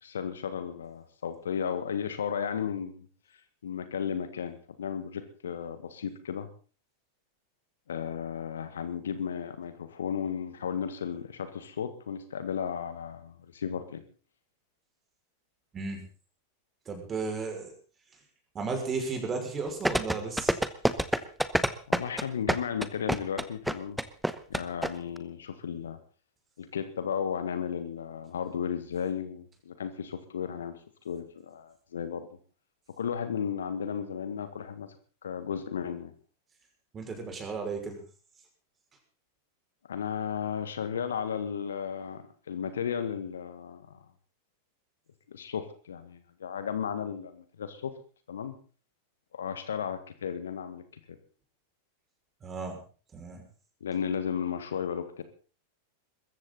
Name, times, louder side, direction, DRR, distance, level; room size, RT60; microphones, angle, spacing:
voice 1, 0.0-2.9 3.3-6.5 7.9-14.0 21.9-24.0 24.5-26.0 26.6-32.3 33.0-35.0 35.2-36.1 39.9-44.1 45.3-47.9 48.3-48.5 49.3-51.2 53.8-55.2, left 7 dB, 65° left, 11 dB, 1.8 m, -34 dB
voice 2, 15.7-16.0 16.9-17.7 18.5-20.5 21.5-21.6 36.9-38.0 52.4-52.8 53.1-53.4, right 4 dB, 20° right, 3 dB, 6.0 m, -34 dB
sound 1, 19.8-24.9 25.2-25.3, right 1 dB, ahead, 1.1 m, -26 dB
21.5 x 15.0 x 4.1 m, 0.38 s
figure-of-eight pair, 90°, 0 cm